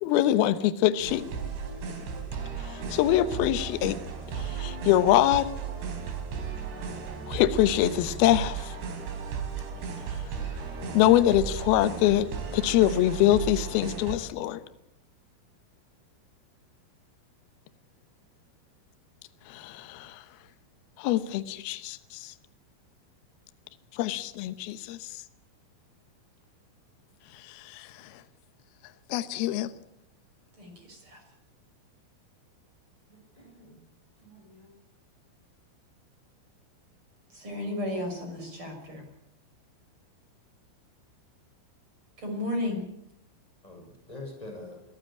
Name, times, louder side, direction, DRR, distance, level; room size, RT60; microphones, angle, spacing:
voice 1, 0.0-1.2 2.6-4.0 4.4-5.5 7.3-8.7 10.9-12.3 12.5-14.6 19.5-20.2 21.0-22.3 23.9-25.1 27.5-27.9 29.1-29.7, left 13 dB, 85° left, 11 dB, 2.1 m, -24 dB
sound 1, 1.0-14.2, right 6 dB, 60° right, 5.5 m, -35 dB
voice 2, 30.6-31.2 37.3-39.0 42.2-42.8, left 1 dB, 25° right, 3 dB, 6.0 m, -33 dB
voice 3, 33.1-33.8 34.2-34.7 43.6-44.8, left 2 dB, 5° left, 0 dB, 6.5 m, -45 dB
23.0 x 15.0 x 8.7 m, 0.76 s
omnidirectional pair, 5.9 m